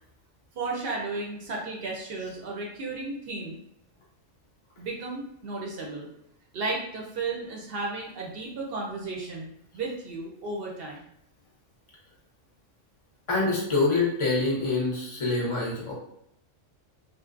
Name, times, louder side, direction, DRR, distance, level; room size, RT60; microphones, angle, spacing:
voice 1, 0.6-3.6 4.8-6.1 6.5-11.0, right 3 dB, 60° right, -1 dB, 0.6 m, -34 dB
voice 2, 13.3-15.9, left 3 dB, 40° left, -4 dB, 0.4 m, -25 dB
2.6 x 2.0 x 2.4 m, 0.76 s
omnidirectional pair, 1.3 m